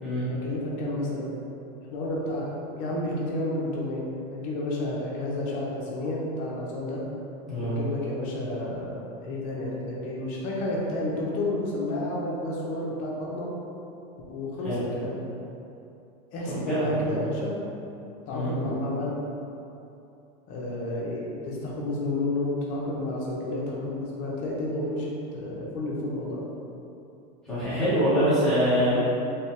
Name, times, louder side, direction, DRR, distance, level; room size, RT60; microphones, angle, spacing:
voice 1, 0.3-1.4 1.9-7.0 7.6-13.5 14.3-15.2 16.3-17.5 18.3-19.1 20.5-26.4, left 1 dB, 40° left, -4 dB, 0.8 m, -31 dB
voice 2, 16.5-17.3 18.3-18.5 27.4-29.0, equal, ahead, -15 dB, 1.2 m, -25 dB
3.4 x 3.3 x 2.9 m, 2.8 s
supercardioid pair, 175°, 20 cm